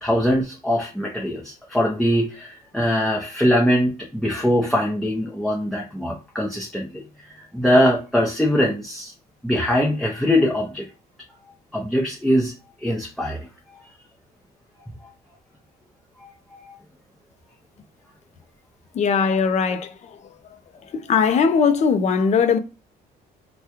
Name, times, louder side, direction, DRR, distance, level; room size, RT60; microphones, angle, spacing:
voice 1, 0.0-9.1 9.4-10.9 11.7-12.5 12.8-13.5 16.2-16.6, equal, ahead, 0.7 m, -22 dB
voice 2, 18.9-20.0 20.2-20.3 20.9-22.6, left 6 dB, 45° left, 0.5 m, -19 dB
3.4 x 2.2 x 2.8 m
cardioid pair, 110°, 17 cm